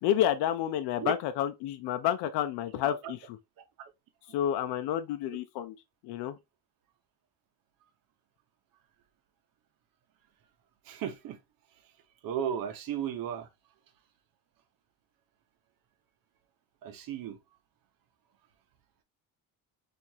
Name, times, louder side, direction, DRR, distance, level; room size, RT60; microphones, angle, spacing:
voice 1, 0.0-3.4 4.3-5.8 6.0-6.4, left 11 dB, 80° left, 0.5 m, -30 dB
voice 2, 10.9-11.4 12.2-13.5 16.8-17.4, right 9 dB, 60° right, 0.8 m, -34 dB
4.6 x 2.6 x 2.7 m
cardioid pair, 160°, 39 cm